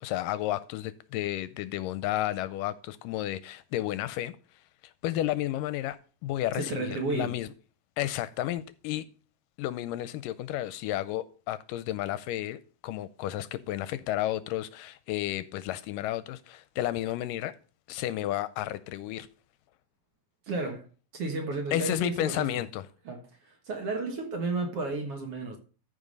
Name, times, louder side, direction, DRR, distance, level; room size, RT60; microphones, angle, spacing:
voice 1, 0.0-4.3 4.8-6.0 6.2-7.5 8.0-9.1 9.6-17.5 17.9-19.3 21.7-22.9, left 14 dB, 80° left, 2.1 m, -32 dB
voice 2, 6.6-7.3 20.5-20.9 21.1-22.6 23.1-25.6, right 3 dB, 55° right, 2.0 m, -33 dB
14.0 x 5.2 x 5.3 m
omnidirectional pair, 4.0 m